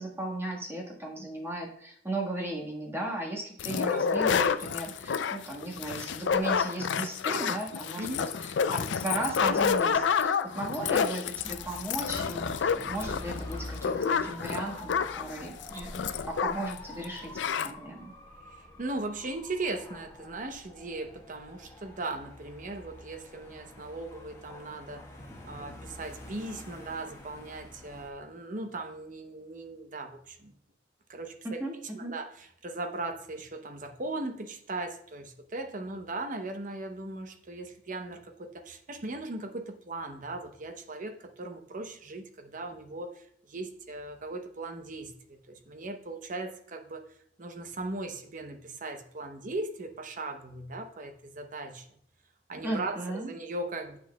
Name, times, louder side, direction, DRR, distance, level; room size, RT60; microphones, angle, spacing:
voice 1, 0.0-8.1 8.4-18.1 31.4-32.1 52.6-53.3, right 1 dB, 15° right, -1 dB, 1.4 m, -36 dB
sound 1, 3.6-16.8 17.0-17.1 17.3-17.7, left 6 dB, 75° left, 0.4 m, -29 dB
voice 2, 8.0-8.3 18.8-25.1 25.4-30.5 31.1-31.6 31.9-47.1 47.4-51.9 52.5-54.0, right 2 dB, 45° right, 6 dB, 0.8 m, -38 dB
Dog / Motorcycle, 11.3-28.1, left 1 dB, 15° left, 1.3 m, -46 dB
9.0 x 6.2 x 2.2 m, 0.67 s
head